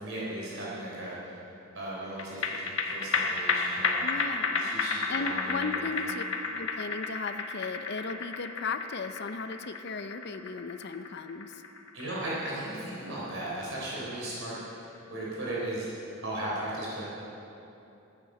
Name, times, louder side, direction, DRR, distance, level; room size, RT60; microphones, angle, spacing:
voice 1, 0.0-1.4 1.7-4.0 4.6-5.8 11.9-15.9 16.2-17.1, right 1 dB, 70° right, -6 dB, 3.6 m, -36 dB
sound 1, 2.2-14.8 15.2-15.3, left 4 dB, 75° left, 1.2 m, -32 dB
voice 2, 4.0-4.7 5.1-6.2 6.6-11.6, left 4 dB, 55° left, 9 dB, 0.6 m, -36 dB
13.5 x 9.8 x 6.5 m, 2.9 s
head